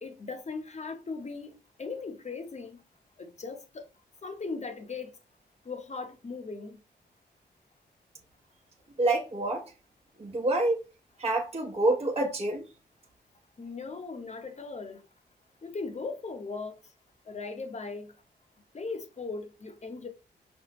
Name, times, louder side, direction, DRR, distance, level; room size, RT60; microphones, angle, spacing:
voice 1, 0.0-2.8 3.2-3.9 4.2-5.1 5.6-6.8 13.6-15.1 15.6-16.8 17.3-18.1 18.7-20.1, left 4 dB, 40° left, 0.9 m, -38 dB
voice 2, 9.0-9.7 10.2-10.8 11.2-12.6, right 2 dB, 35° right, 1.0 m, -27 dB
5.2 x 2.1 x 2.9 m
supercardioid pair, 50°, 18 cm